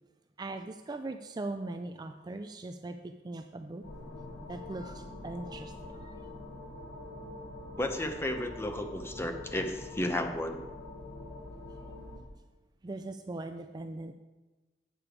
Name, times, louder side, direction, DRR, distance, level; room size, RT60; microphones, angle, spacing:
voice 1, 0.4-3.8 4.5-6.3 12.8-14.1, right 2 dB, 25° right, 7 dB, 0.4 m, -40 dB
sound 1, 3.8-12.2, left 2 dB, 75° left, 1.5 m, -45 dB
voice 2, 7.8-10.6, left 1 dB, 15° left, 6 dB, 0.7 m, -33 dB
8.7 x 6.8 x 4.7 m, 1.2 s
head